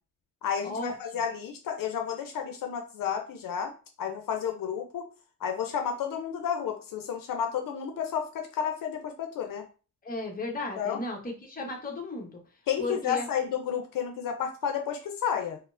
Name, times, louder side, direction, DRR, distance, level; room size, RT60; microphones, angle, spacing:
voice 1, 0.4-3.7 4.0-5.0 5.4-9.6 10.8-11.0 12.7-15.6, left 8 dB, 70° left, 4 dB, 0.6 m, -31 dB
voice 2, 10.0-12.4 12.8-13.3, left 2 dB, 25° left, 0 dB, 0.9 m, -34 dB
4.3 x 2.0 x 2.5 m, 0.35 s
cardioid pair, 110°, 34 cm